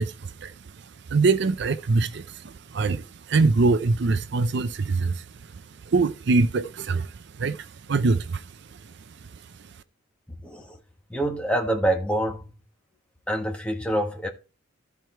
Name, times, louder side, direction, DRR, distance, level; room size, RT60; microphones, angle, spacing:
voice 1, 0.0-8.9 9.3-9.4, right 3 dB, 55° right, 0.5 m, -24 dB
voice 2, 10.4-10.8 11.1-12.5 13.3-14.3, right 1 dB, 5° left, 1.4 m, -26 dB
13.0 x 4.6 x 4.5 m
head